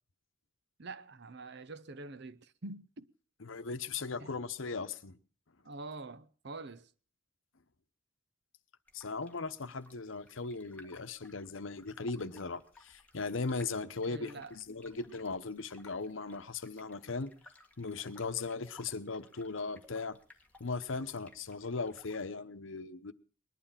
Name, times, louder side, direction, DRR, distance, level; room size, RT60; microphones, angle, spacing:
voice 1, 0.8-3.1 4.2-4.3 5.6-6.9 14.1-14.6, right 3 dB, 55° right, 0.8 m, -46 dB
voice 2, 3.4-5.2 8.9-17.3 17.8-20.2 20.6-23.1, left 4 dB, 70° left, 0.9 m, -38 dB
sound 1, 8.9-22.3, left 2 dB, 10° left, 1.9 m, -60 dB
20.5 x 11.5 x 5.7 m
head